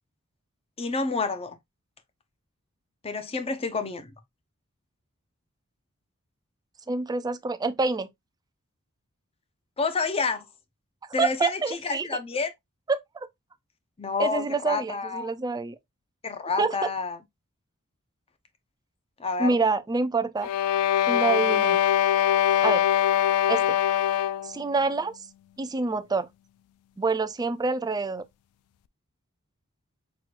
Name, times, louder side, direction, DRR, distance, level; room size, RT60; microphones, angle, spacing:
voice 1, 0.8-1.6 3.0-4.1 9.8-10.5 11.1-12.5 14.0-15.3 16.2-17.2 19.2-19.6, left 4 dB, 25° left, 0.6 m, -29 dB
voice 2, 6.9-8.1 11.2-12.1 12.9-13.0 14.2-15.8 16.6-16.8 19.4-20.5 21.1-21.8 22.6-22.8 23.5-23.8 24.4-25.2 25.6-26.3 27.0-28.2, right 4 dB, 15° right, 0.4 m, -26 dB
sound 1, 20.4-24.6, left 11 dB, 75° left, 0.3 m, -22 dB
6.0 x 3.1 x 2.4 m
head